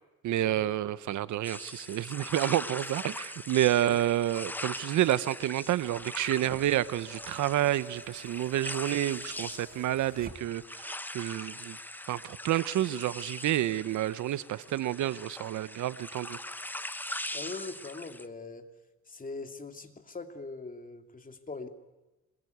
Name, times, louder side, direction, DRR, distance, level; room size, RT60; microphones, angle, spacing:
voice 1, 0.2-11.8 12.1-16.4, right 13 dB, 75° right, 16 dB, 1.0 m, -29 dB
sound 1, 1.4-18.3, left 1 dB, 5° left, 1.0 m, -41 dB
sound 2, 5.7-10.8 12.0-12.1, right 4 dB, 30° right, 2.4 m, -51 dB
voice 2, 17.3-18.6 19.1-21.7, left 3 dB, 25° left, 6 dB, 2.7 m, -41 dB
26.0 x 21.5 x 9.5 m, 1.1 s
cardioid pair, 90°, 30 cm